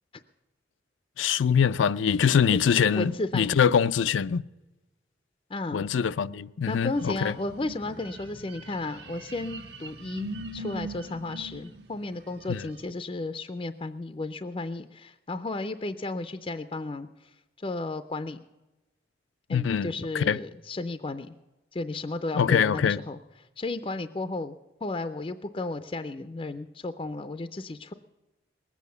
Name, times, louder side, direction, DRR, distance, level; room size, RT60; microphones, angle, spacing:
voice 1, 1.2-4.4 5.7-7.3 12.5-12.7 19.5-20.4 22.3-23.0, left 7 dB, 90° left, 0.4 m, -24 dB
voice 2, 2.9-3.6 5.5-5.9 6.7-18.4 19.5-21.3 21.7-23.2 23.6-24.6 24.8-27.9, left 2 dB, 30° left, 0.4 m, -34 dB
sound 1, 6.9-12.9, right 1 dB, 65° right, 1.4 m, -42 dB
20.0 x 8.4 x 6.8 m
head